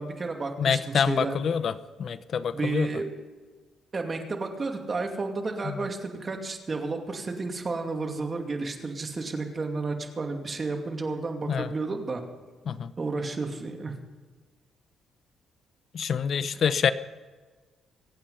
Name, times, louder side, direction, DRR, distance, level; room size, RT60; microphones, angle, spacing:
voice 1, 0.0-1.4 2.5-3.1 3.9-12.2 13.0-13.9, right 3 dB, 35° right, 4 dB, 2.5 m, -32 dB
voice 2, 0.6-1.7 2.0-2.9 5.6-5.8 11.5-11.7 12.7-12.9 15.9-16.9, left 7 dB, 55° left, 14 dB, 0.7 m, -26 dB
24.0 x 9.2 x 5.6 m, 1.4 s
cardioid pair, 90°, 0 cm